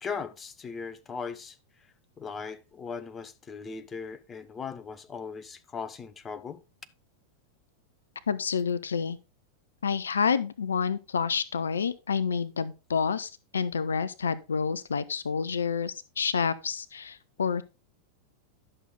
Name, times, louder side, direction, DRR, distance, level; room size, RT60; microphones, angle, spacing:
voice 1, 0.0-1.6 2.2-6.6, left 5 dB, 20° left, 0.9 m, -38 dB
voice 2, 8.3-9.2 9.8-17.6, left 6 dB, 70° left, 0.4 m, -29 dB
11.0 x 6.4 x 3.9 m
figure-of-eight pair, 90°, 0 cm